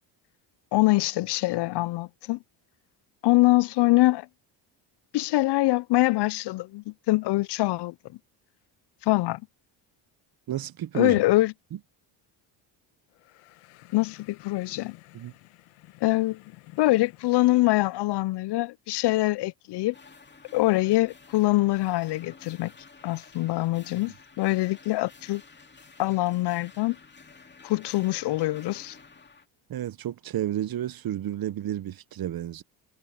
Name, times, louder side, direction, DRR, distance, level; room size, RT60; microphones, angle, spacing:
voice 1, 0.7-2.4 3.2-4.3 5.1-7.9 9.0-9.4 10.9-11.5 13.9-14.9 16.0-16.4 16.8-19.9 20.5-22.7 23.0-25.4 26.0-27.0 27.6-29.0, left 19 dB, 55° left, 0.5 m, -24 dB
voice 2, 10.5-11.2 11.7-11.8 15.1-15.3 29.7-32.6, right 12 dB, 45° right, 0.9 m, -31 dB
sound 1, 13.1-18.1, left 20 dB, 90° left, 1.7 m, -52 dB
sound 2, 19.9-29.5, left 4 dB, 20° left, 2.3 m, -52 dB
supercardioid pair, 85°, 49 cm